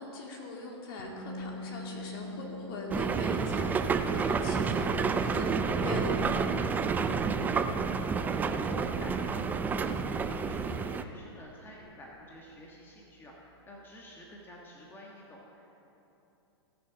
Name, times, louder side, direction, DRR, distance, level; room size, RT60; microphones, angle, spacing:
voice 1, 0.0-6.2, left 2 dB, 50° left, -1 dB, 2.4 m, -40 dB
sound 1, 1.0-12.8, left 2 dB, 75° right, 1.8 m, -48 dB
sound 2, 2.9-11.0, right 5 dB, 10° right, 0.4 m, -29 dB
voice 2, 7.1-15.7, equal, 15° left, -3 dB, 1.5 m, -48 dB
17.5 x 6.9 x 5.0 m, 3.0 s
hypercardioid pair, 120°, 15 cm